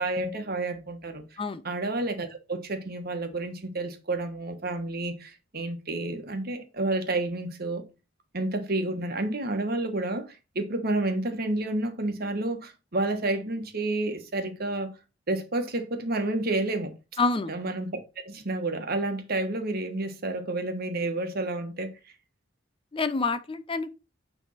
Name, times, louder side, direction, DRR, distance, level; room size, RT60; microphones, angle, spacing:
voice 1, 0.0-1.2 1.6-7.8 8.3-14.9 15.3-16.9 17.5-18.0 18.2-21.9, right 2 dB, 55° right, 1.4 m, -30 dB
voice 2, 17.2-17.5 22.9-23.9, left 3 dB, 30° left, 0.6 m, -27 dB
9.1 x 3.5 x 5.6 m
head